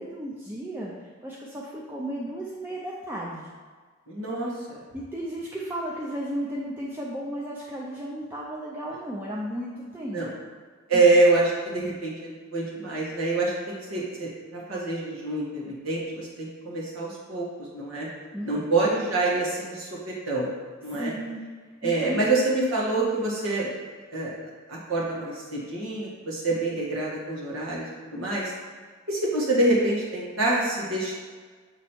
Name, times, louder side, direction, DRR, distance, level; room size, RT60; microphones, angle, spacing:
voice 1, 0.0-3.5 4.9-10.4 10.9-11.1 18.3-18.8 20.9-21.4 21.8-22.3, right 1 dB, 10° right, -5 dB, 0.5 m, -34 dB
voice 2, 4.1-4.8 10.1-10.3 10.9-17.5 17.7-18.1 18.4-19.9 20.3-20.5 20.8-21.1 21.8-23.7 24.1-24.3 24.7-28.5 29.1-31.1, right 2 dB, 80° right, -5 dB, 1.6 m, -26 dB
7.1 x 3.1 x 4.5 m, 1.5 s
head